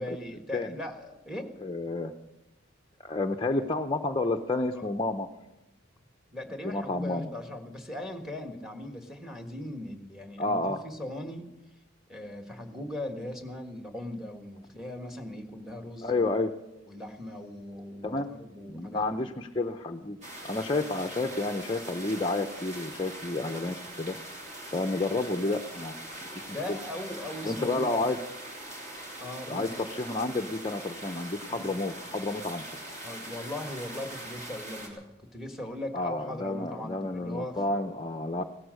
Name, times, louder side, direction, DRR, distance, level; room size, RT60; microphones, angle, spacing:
voice 1, 0.0-1.5 4.7-4.8 6.3-11.4 12.1-16.3 16.9-19.4 26.5-28.0 29.2-29.7 31.5-31.8 33.0-37.9, left 1 dB, ahead, 5 dB, 1.5 m, -39 dB
voice 2, 1.6-2.1 3.0-5.3 6.6-7.3 10.4-10.8 16.0-16.5 18.0-18.3 18.7-20.2 20.5-24.2 24.7-25.9 26.3-26.8 27.4-28.2 29.5-32.6 35.9-38.4, left 2 dB, 25° left, 4 dB, 0.6 m, -30 dB
sound 1, 20.2-34.9, right 1 dB, 35° right, 3.1 m, -42 dB
17.0 x 13.0 x 6.4 m, 0.96 s
head